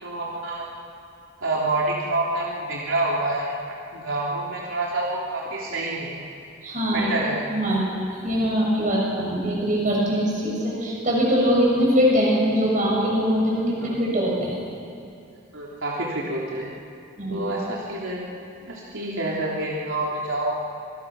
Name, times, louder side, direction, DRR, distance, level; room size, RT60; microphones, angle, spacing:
voice 1, 0.0-0.7 1.4-3.5 3.9-6.2 6.9-7.4 13.8-13.9 15.5-16.7 17.3-18.2 18.7-20.6, right 2 dB, 80° right, -4 dB, 3.1 m, -27 dB
voice 2, 6.6-7.1 7.5-7.9 8.2-14.6 17.2-17.4, equal, 40° right, -3 dB, 7.4 m, -22 dB
26.5 x 23.5 x 6.2 m, 2.6 s
head